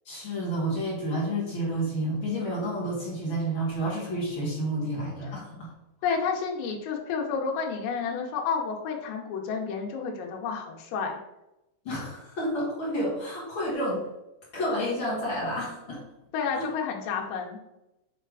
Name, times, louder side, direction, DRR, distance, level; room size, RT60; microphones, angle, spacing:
voice 1, 0.0-5.7 11.8-14.0 14.5-16.0 16.5-16.6, equal, 60° left, -5 dB, 1.3 m, -30 dB
voice 2, 6.0-11.2 16.3-17.6, left 5 dB, 85° left, 1 dB, 3.1 m, -30 dB
8.2 x 3.4 x 4.7 m, 0.92 s
omnidirectional pair, 4.9 m